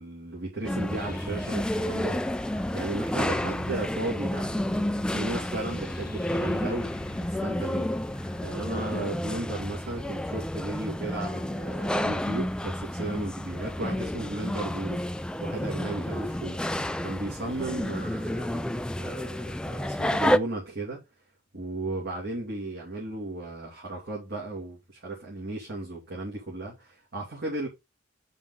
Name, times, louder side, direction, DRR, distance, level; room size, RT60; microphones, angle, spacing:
voice 1, 0.0-2.2 2.7-15.0 15.4-16.6 17.0-21.0 21.5-27.7, right 2 dB, 60° right, 2.6 m, -35 dB
sound 1, 0.6-20.4, left 1 dB, 5° left, 0.3 m, -30 dB
sound 2, 1.0-8.6, left 2 dB, 50° left, 0.8 m, -48 dB
7.2 x 5.5 x 3.9 m
head